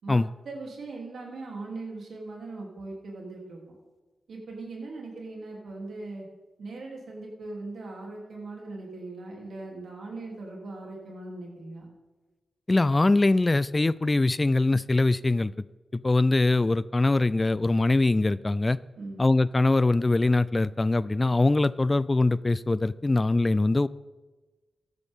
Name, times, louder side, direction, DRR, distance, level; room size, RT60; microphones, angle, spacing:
voice 1, 0.4-3.8 4.3-6.3 6.6-11.9 19.0-19.2, right 2 dB, 75° right, -1 dB, 3.1 m, -40 dB
voice 2, 12.7-15.5 15.9-18.8 19.2-23.9, left 2 dB, 30° left, 19 dB, 0.4 m, -22 dB
14.0 x 12.0 x 3.7 m, 1.2 s
supercardioid pair, 40°, 0 cm